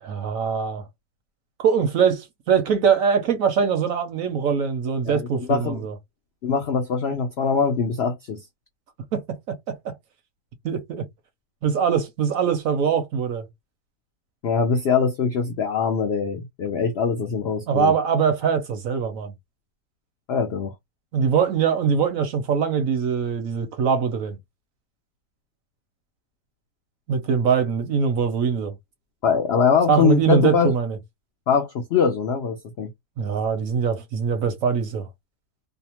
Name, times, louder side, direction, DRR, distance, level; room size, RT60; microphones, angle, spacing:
voice 1, 0.0-0.8 1.6-5.9 9.1-10.0 10.6-11.0 11.6-13.5 17.7-19.3 21.1-24.4 27.1-28.8 29.9-31.0 33.2-35.1, right 6 dB, 70° right, 0.9 m, -22 dB
voice 2, 5.0-5.8 6.4-8.4 14.4-17.9 20.3-20.7 29.2-30.7 31.5-32.9, left 6 dB, 85° left, 0.5 m, -22 dB
2.7 x 2.1 x 2.8 m
omnidirectional pair, 1.8 m